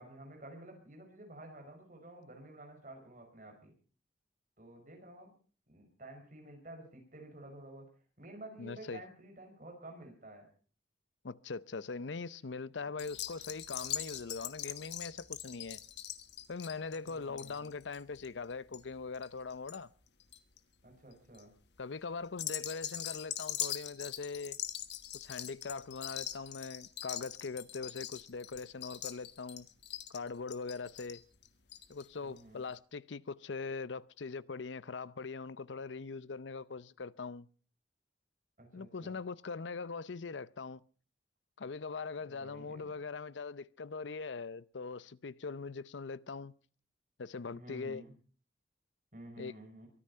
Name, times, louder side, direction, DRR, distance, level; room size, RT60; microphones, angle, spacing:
voice 1, 0.0-3.7 4.6-5.3 5.7-7.9 8.2-10.5 12.7-13.0 16.9-17.7 20.8-21.5 32.2-32.6 38.6-39.2 42.2-42.9 47.5-48.1 49.1-49.9, right 1 dB, 45° right, 5.8 m, -51 dB
voice 2, 8.6-9.0 11.2-15.8 16.5-19.9 21.8-24.6 25.1-29.7 30.1-31.2 31.9-37.5 38.7-40.8 41.6-46.5 47.2-48.0 49.4-49.5, left 4 dB, 85° left, 0.6 m, -41 dB
sound 1, 13.0-19.8 20.1-20.6 21.1-21.4 22.3-32.1 32.4-32.5 32.7-32.8, left 11 dB, 70° left, 1.3 m, -42 dB
23.5 x 9.8 x 5.6 m
head